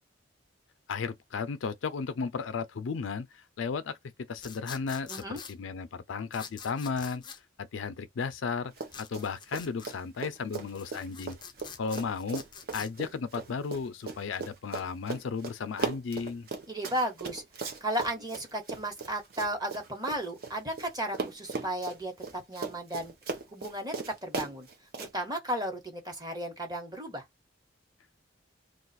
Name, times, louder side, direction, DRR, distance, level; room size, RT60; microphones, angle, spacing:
voice 1, 0.9-4.0 4.3-7.2 7.6-8.7 9.0-11.4 11.8-12.4 12.7-16.5, left 5 dB, 80° left, 0.4 m, -34 dB
sound 1, 4.4-5.5 6.3-7.4 8.9-10.0 10.6-12.9, left 7 dB, 25° left, 0.4 m, -46 dB
voice 2, 5.1-5.4 16.7-17.4 17.8-23.1 23.5-24.7 25.0-27.3, right 1 dB, 20° right, 1.0 m, -34 dB
Run, 8.7-9.3 9.5-20.9 21.1-25.1, right 4 dB, 50° right, 0.7 m, -38 dB
2.5 x 2.3 x 4.0 m
head